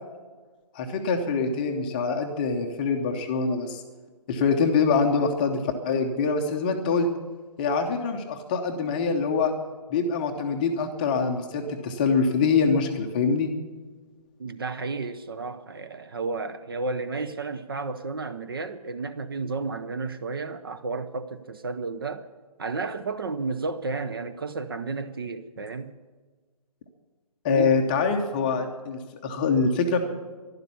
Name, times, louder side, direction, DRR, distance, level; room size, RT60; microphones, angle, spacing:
voice 1, 0.7-3.8 4.3-7.1 7.6-9.5 9.9-13.5 27.4-30.1, left 5 dB, 15° left, 0.7 m, -24 dB
voice 2, 14.4-22.3 22.6-25.9 27.5-27.8, right 3 dB, 35° right, 0.6 m, -32 dB
12.0 x 11.5 x 8.3 m
figure-of-eight pair, 160°, 20 cm